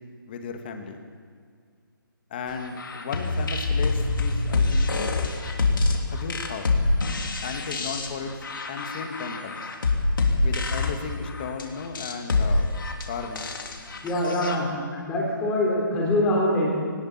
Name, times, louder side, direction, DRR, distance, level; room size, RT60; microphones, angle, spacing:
voice 1, 0.3-1.0 2.3-5.2 6.1-6.7 7.4-8.4 8.7-9.6 10.4-12.7 13.1-13.5, left 5 dB, 25° left, 5 dB, 1.8 m, -35 dB
sound 1, 2.6-14.6, left 3 dB, 65° left, 3.2 m, -26 dB
voice 2, 14.0-14.8 15.0-16.7, left 1 dB, 10° left, -3 dB, 3.7 m, -24 dB
19.5 x 19.0 x 7.4 m, 2.1 s
hypercardioid pair, 170°, 12 cm